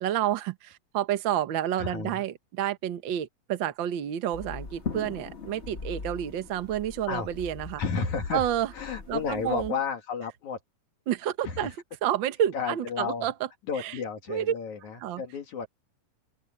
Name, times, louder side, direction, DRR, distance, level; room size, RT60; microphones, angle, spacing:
voice 1, 0.0-7.8 8.3-8.7 9.1-9.7 11.1-11.7 12.0-13.3 13.7-14.0 14.3-14.5 15.0-15.2, right 11 dB, 80° right, 1.0 m, -29 dB
voice 2, 1.8-2.2 7.1-7.3 7.8-8.4 8.7-10.6 11.4-11.5 12.5-13.3 13.7-15.7, left 5 dB, 65° left, 3.3 m, -32 dB
sound 1, 4.3-9.7, left 5 dB, 40° left, 0.9 m, -40 dB
open air
omnidirectional pair, 3.7 m